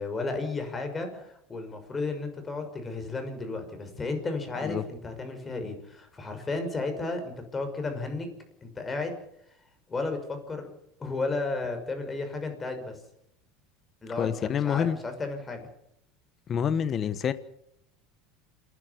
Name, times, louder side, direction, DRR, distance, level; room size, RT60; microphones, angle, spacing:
voice 1, 0.0-8.3 8.6-9.2 9.9-10.7 11.0-13.0 14.0-15.7, left 3 dB, 20° left, 6.2 m, -33 dB
voice 2, 14.2-15.0 16.5-17.3, left 8 dB, 35° left, 1.3 m, -27 dB
28.0 x 11.0 x 9.8 m
supercardioid pair, 110°, 0 cm